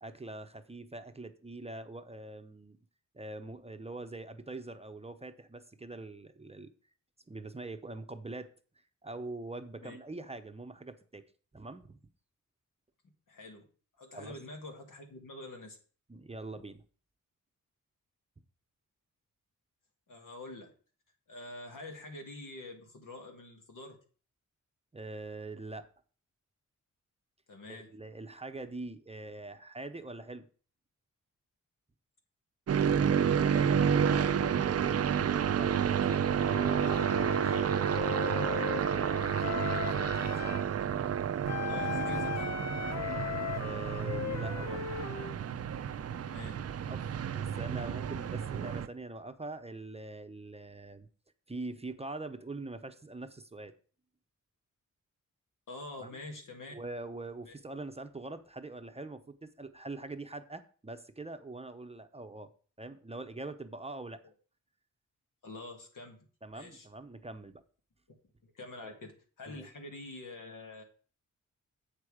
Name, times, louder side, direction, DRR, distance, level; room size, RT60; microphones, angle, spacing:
voice 1, 0.0-2.8 3.1-6.7 7.3-8.5 9.0-11.2 11.5-12.0 14.1-14.4 16.1-16.8 24.9-25.9 27.7-30.4 37.1-37.6 38.9-39.6 40.4-40.6 43.6-44.9 46.9-51.1 51.5-53.7 56.0-56.1 56.7-62.5 62.8-64.2 66.4-67.6 68.8-69.0 69.5-69.7, right 2 dB, 20° right, 8 dB, 0.7 m, -43 dB
voice 2, 13.3-13.6 14.0-15.8 20.1-20.7 21.3-24.0 27.5-27.9 33.1-35.0 35.9-37.3 39.7-40.1 41.7-42.6 46.2-46.6 55.7-56.7 57.5-57.6 65.4-66.3 66.5-66.9 68.4-69.1 69.4-70.8, left 2 dB, 75° left, 3 dB, 2.1 m, -46 dB
sound 1, 32.7-48.9, right 8 dB, 50° right, 0.5 m, -30 dB
Wind instrument woodwind instrument, 36.4-40.7 41.5-45.4, left 8 dB, 55° left, 0.8 m, -38 dB
8.1 x 6.3 x 4.9 m, 0.41 s
wide cardioid pair, 90°, 32 cm